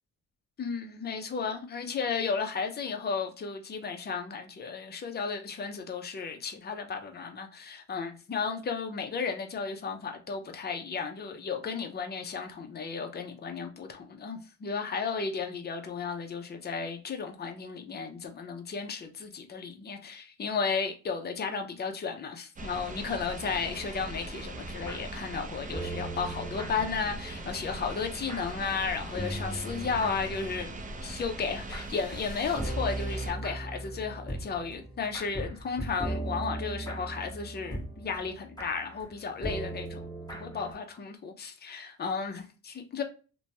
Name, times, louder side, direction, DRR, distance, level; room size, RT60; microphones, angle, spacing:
voice 1, 0.6-30.7 31.0-43.0, left 5 dB, 35° left, 0.6 m, -34 dB
sound 1, 22.6-33.3, right 2 dB, 25° right, 0.5 m, -40 dB
sound 2, 24.4-28.8 29.1-40.7, right 1 dB, 15° left, 1.2 m, -39 dB
2.9 x 2.2 x 2.7 m
cardioid pair, 90°, 30 cm